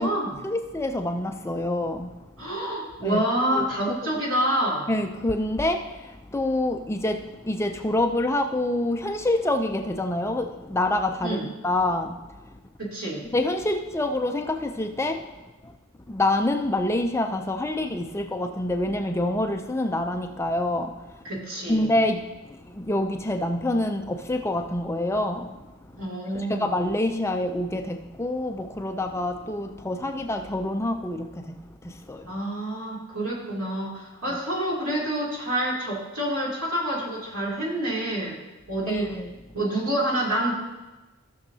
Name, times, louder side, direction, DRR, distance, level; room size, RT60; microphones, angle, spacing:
voice 1, 0.4-2.5 3.0-3.2 3.5-4.0 4.9-11.4 11.6-12.6 13.3-15.8 16.1-21.2 21.7-26.1 26.3-32.4 34.3-34.4 38.9-39.3, left 1 dB, 10° left, 5 dB, 0.4 m, -27 dB
voice 2, 2.4-4.9 11.2-11.4 12.8-13.2 21.2-21.8 26.0-26.6 32.3-38.4 38.7-39.1 39.5-40.5, right 1 dB, 80° right, -5 dB, 2.9 m, -27 dB
15.5 x 6.3 x 2.7 m, 1.1 s
head